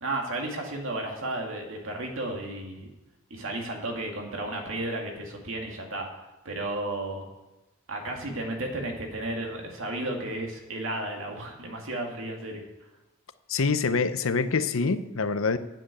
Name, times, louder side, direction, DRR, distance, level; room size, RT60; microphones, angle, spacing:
voice 1, 0.0-2.9 3.3-6.1 6.4-7.3 7.9-12.6, right 1 dB, 70° right, 1 dB, 2.3 m, -33 dB
voice 2, 13.5-15.6, left 4 dB, 70° left, 12 dB, 0.7 m, -25 dB
9.2 x 7.6 x 8.4 m, 1.0 s
head